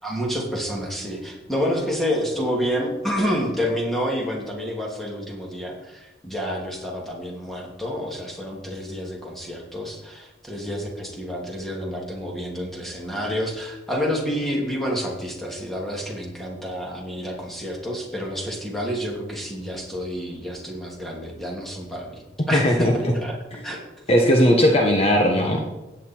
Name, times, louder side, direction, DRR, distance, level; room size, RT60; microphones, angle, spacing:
voice 1, 0.0-23.4 23.6-23.8, equal, ahead, -2 dB, 2.8 m, -29 dB
voice 2, 22.5-23.1 23.5-23.6 24.1-25.6, equal, 35° left, 1 dB, 1.2 m, -18 dB
16.0 x 9.1 x 4.6 m, 1.1 s
head